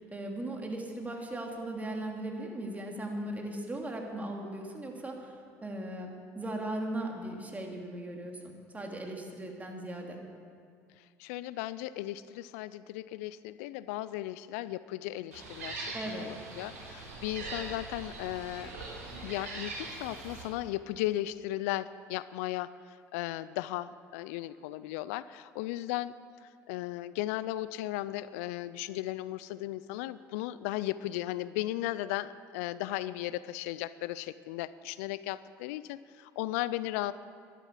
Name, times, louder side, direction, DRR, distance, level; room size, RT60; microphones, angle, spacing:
voice 1, 0.0-5.4 5.6-10.2 15.9-16.3, right 1 dB, 20° right, 1 dB, 2.9 m, -38 dB
voice 2, 11.0-18.8 19.2-26.1 26.4-37.1, left 15 dB, 75° left, 16 dB, 0.4 m, -36 dB
Gull seagull, 15.3-20.4, right 3 dB, 85° right, 3.6 m, -42 dB
13.0 x 12.0 x 7.4 m, 2.3 s
hypercardioid pair, 65°, 8 cm